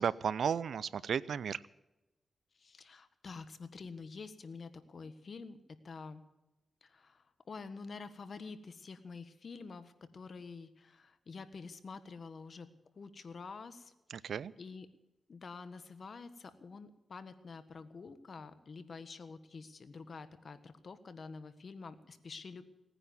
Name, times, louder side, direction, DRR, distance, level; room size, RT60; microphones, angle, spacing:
voice 1, 0.0-1.6 14.1-14.5, right 7 dB, 85° right, 20 dB, 0.5 m, -34 dB
voice 2, 2.6-5.6 5.8-6.2 6.8-12.7 12.9-13.9 14.6-14.9 15.3-22.6, left 4 dB, 60° left, 11 dB, 1.5 m, -48 dB
18.5 x 9.9 x 7.1 m, 0.96 s
cardioid pair, 60°, 0 cm